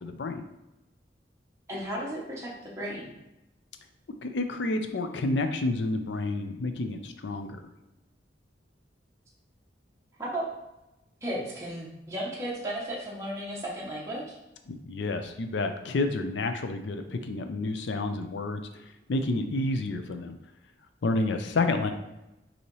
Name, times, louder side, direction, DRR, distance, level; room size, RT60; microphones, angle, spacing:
voice 1, 0.0-0.4 4.2-7.6 14.7-20.4 21.0-21.9, left 2 dB, 75° left, 7 dB, 0.5 m, -30 dB
voice 2, 1.7-3.1 10.2-10.5 11.2-14.4, right 1 dB, 15° right, -5 dB, 0.8 m, -34 dB
5.4 x 2.8 x 3.1 m, 0.96 s
head